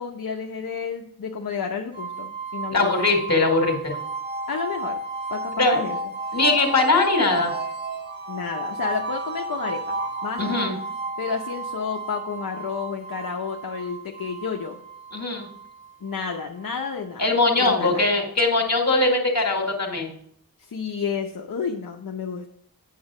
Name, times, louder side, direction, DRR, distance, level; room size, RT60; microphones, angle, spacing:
voice 1, 0.0-3.0 4.5-5.0 5.3-6.0 8.3-10.0 10.2-10.8 11.2-14.8 16.0-18.1 20.7-22.5, left 6 dB, 60° left, 2 dB, 0.8 m, -31 dB
sound 1, 1.9-16.9, right 3 dB, 30° right, 1.1 m, -33 dB
voice 2, 2.7-4.0 5.6-5.8 6.3-7.5 10.4-10.8 15.1-15.5 17.2-20.1, left 2 dB, 45° left, 2 dB, 2.1 m, -21 dB
8.6 x 6.4 x 4.8 m, 0.67 s
wide cardioid pair, 80°, 37 cm